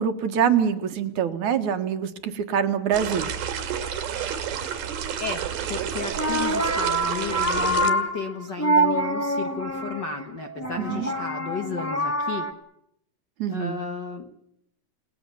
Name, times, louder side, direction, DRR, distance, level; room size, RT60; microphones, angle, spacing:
voice 1, 0.0-3.3 10.8-11.1 13.4-13.8, right 8 dB, 60° right, 8 dB, 2.6 m, -25 dB
sound 1, 2.9-7.9, right 8 dB, 80° right, 3.9 m, -30 dB
voice 2, 5.2-12.5 13.5-14.3, left 5 dB, 65° left, 6 dB, 1.0 m, -33 dB
sound 2, 6.0-12.5, right 1 dB, 5° left, 1.4 m, -26 dB
30.0 x 18.5 x 7.1 m, 0.76 s
omnidirectional pair, 4.4 m